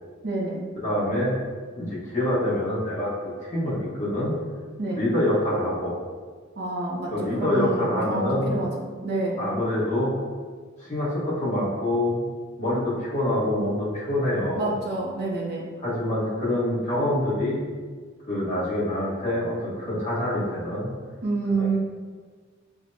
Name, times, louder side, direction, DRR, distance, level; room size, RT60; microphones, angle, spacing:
voice 1, 0.2-0.6 4.8-5.0 6.6-9.4 14.6-15.7 21.2-21.8, right 2 dB, 50° right, -2 dB, 0.6 m, -28 dB
voice 2, 0.8-1.4 1.7-4.3 4.9-5.9 7.1-8.5 9.4-10.1 10.8-12.2 12.6-14.7 15.8-17.6 18.3-20.9 21.6-21.8, left 1 dB, 40° left, -8 dB, 1.3 m, -26 dB
5.9 x 2.2 x 2.6 m, 1.5 s
head